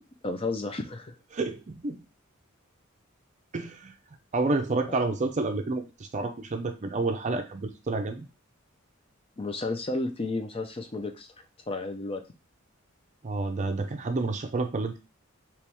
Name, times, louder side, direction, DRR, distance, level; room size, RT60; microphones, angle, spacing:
voice 1, 0.2-1.1 9.4-11.3 11.7-12.2, left 2 dB, 25° left, 6 dB, 0.5 m, -32 dB
voice 2, 1.3-2.0 3.5-3.9 4.3-8.2 13.2-15.0, right 3 dB, 35° right, 6 dB, 0.5 m, -29 dB
3.5 x 3.0 x 3.0 m, 0.30 s
head